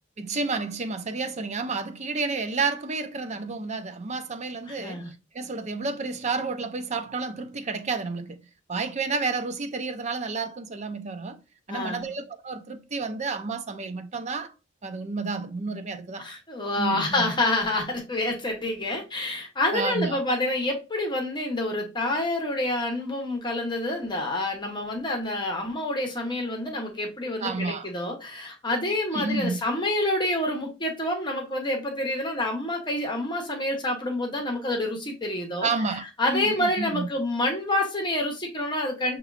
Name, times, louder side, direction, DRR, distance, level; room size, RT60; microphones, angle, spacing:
voice 1, 0.2-8.4 8.7-11.4 11.7-14.5 14.8-16.3 16.8-17.3 19.7-20.2 27.4-27.9 29.1-29.6 35.6-37.1, right 4 dB, 35° right, 0.5 m, -30 dB
voice 2, 4.7-5.1 11.7-12.2 16.2-35.7 36.2-39.2, left 1 dB, 25° left, 1.0 m, -28 dB
5.9 x 3.0 x 2.4 m
head